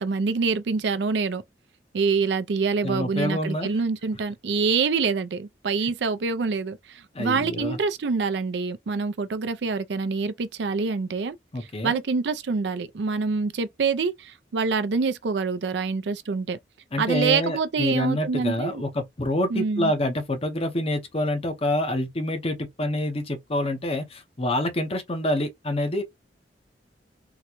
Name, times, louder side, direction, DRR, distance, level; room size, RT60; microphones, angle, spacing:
voice 1, 0.0-1.4 1.9-11.4 11.8-16.6 17.0-18.8 19.5-19.9, right 4 dB, 70° right, 0.4 m, -26 dB
voice 2, 2.8-3.7 7.1-7.8 11.5-12.0 16.9-26.0, left 1 dB, 35° left, 0.8 m, -27 dB
3.8 x 2.2 x 2.9 m
head